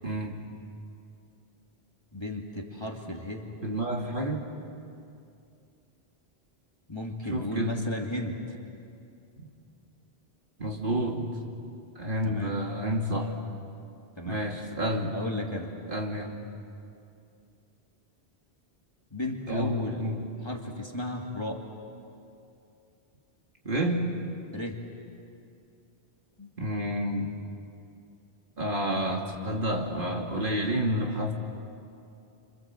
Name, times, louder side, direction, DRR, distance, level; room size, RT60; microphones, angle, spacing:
voice 1, 0.0-0.4 3.6-4.5 7.3-7.8 9.4-9.5 10.6-11.3 12.0-13.3 14.3-15.1 15.9-16.4 19.5-20.2 23.6-24.1 26.6-27.3 28.6-31.3, equal, 50° right, 0 dB, 2.6 m, -29 dB
voice 2, 2.1-3.5 6.9-8.6 12.2-12.5 14.2-14.4 15.1-15.7 19.1-20.0 20.4-21.7 24.5-24.8 26.4-26.5, left 1 dB, 25° left, 0 dB, 2.4 m, -34 dB
29.5 x 26.0 x 7.7 m, 2.5 s
omnidirectional pair, 1.1 m